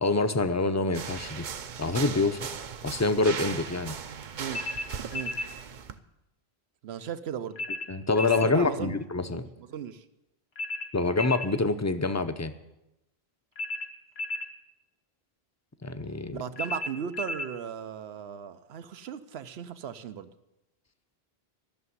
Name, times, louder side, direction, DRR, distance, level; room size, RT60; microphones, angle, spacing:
voice 1, 0.0-1.5 1.8-2.5 2.8-4.0 7.9-9.4 10.9-12.5 15.8-16.4, left 3 dB, 20° left, 10 dB, 0.6 m, -26 dB
sound 1, 0.9-6.0, right 6 dB, 55° right, 0.8 m, -38 dB
sound 2, 4.5-5.5 7.6-8.5 10.6-11.5 13.6-14.5 16.6-17.5, left 2 dB, 80° left, 1.5 m, -34 dB
voice 2, 6.8-7.7 8.4-8.9 9.3-9.4 9.7-10.0 16.3-20.3, right 8 dB, 80° right, 12 dB, 1.0 m, -36 dB
14.0 x 6.8 x 9.6 m, 0.91 s
omnidirectional pair, 1.0 m